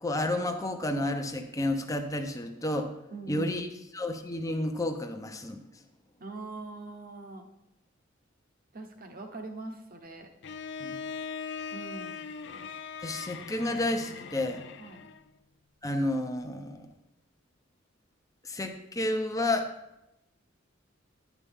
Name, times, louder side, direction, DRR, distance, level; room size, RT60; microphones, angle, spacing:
voice 1, 0.0-2.9 3.3-3.7 3.9-5.6 10.8-11.0 13.0-14.6 15.8-16.9 18.4-19.7, left 1 dB, 15° left, 5 dB, 0.8 m, -31 dB
voice 2, 3.1-3.6 6.2-7.5 8.7-10.3 11.7-12.3 14.8-15.0, right 3 dB, 45° right, 5 dB, 1.2 m, -42 dB
Bowed string instrument, 10.4-15.3, left 6 dB, 60° left, 0.5 m, -40 dB
11.0 x 8.4 x 3.6 m, 0.89 s
head